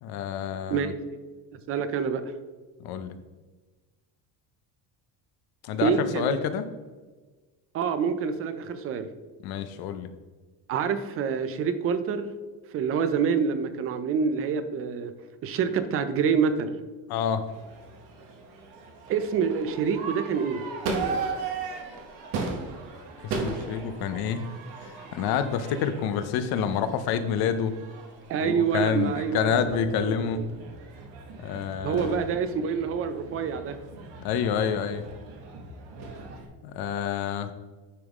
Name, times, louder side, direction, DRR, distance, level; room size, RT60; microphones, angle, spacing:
voice 1, 0.0-0.9 2.8-3.2 5.6-6.7 9.4-10.1 17.1-17.4 23.2-24.4 24.8-27.7 28.4-30.4 31.4-32.3 34.2-35.0 36.6-37.5, left 7 dB, 60° left, 10 dB, 0.6 m, -28 dB
voice 2, 1.5-2.2 5.8-6.4 7.7-9.1 10.7-12.3 12.7-15.1 15.4-16.7 19.1-20.6 28.3-29.7 30.0-30.4 31.8-33.8, right 6 dB, 35° right, 10 dB, 0.4 m, -27 dB
Crowd / Fireworks, 17.5-36.5, right 4 dB, 65° right, 1.2 m, -37 dB
9.8 x 3.5 x 3.5 m, 1.3 s
cardioid pair, 165°, 42 cm